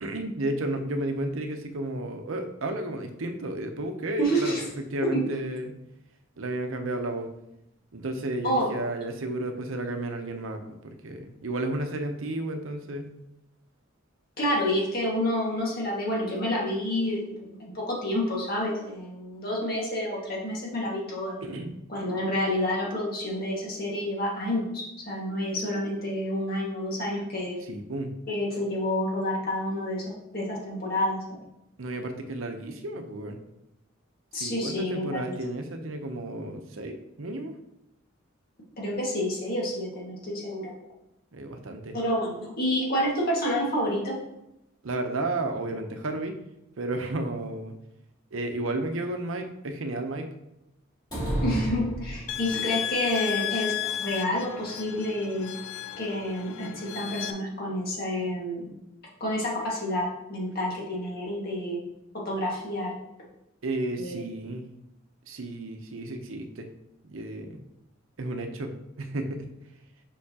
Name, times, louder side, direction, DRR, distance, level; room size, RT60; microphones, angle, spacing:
voice 1, 0.0-4.6 4.9-5.8 6.4-7.3 7.9-13.1 21.4-21.7 27.6-28.1 31.8-33.4 34.3-37.5 41.3-42.0 44.8-46.3 46.8-47.8 48.3-50.3 63.6-64.6 65.3-66.7 67.1-67.6 68.2-69.5, right 2 dB, 75° right, 5 dB, 0.8 m, -32 dB
voice 2, 4.2-4.6 5.1-5.2 8.4-8.7 14.4-21.4 21.9-27.6 28.3-30.0 30.3-31.2 34.3-35.2 38.8-40.7 41.9-44.2 51.4-55.5 56.0-58.7 59.2-61.8 62.3-62.9 64.0-64.2, left 1 dB, 50° left, -4 dB, 1.8 m, -29 dB
sound 1, 51.1-52.7, equal, 20° left, 2.5 m, -30 dB
sound 2, 52.3-57.3, left 11 dB, 80° left, 0.4 m, -34 dB
6.6 x 5.6 x 2.9 m, 0.86 s
head